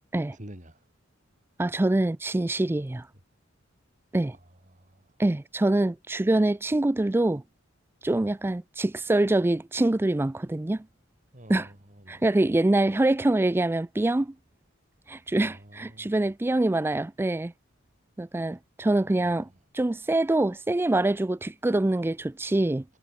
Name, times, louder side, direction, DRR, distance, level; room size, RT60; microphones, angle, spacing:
voice 1, 0.3-0.8 4.3-4.4 4.7-5.2 11.3-12.2 15.3-16.3 19.2-19.4, right 1 dB, 40° right, 3.7 m, -48 dB
voice 2, 1.6-3.1 4.1-4.4 5.2-7.4 8.0-10.9 11.5-11.7 12.1-14.3 15.1-17.5 18.2-19.5 19.7-22.8, right 2 dB, 10° right, 0.3 m, -25 dB
head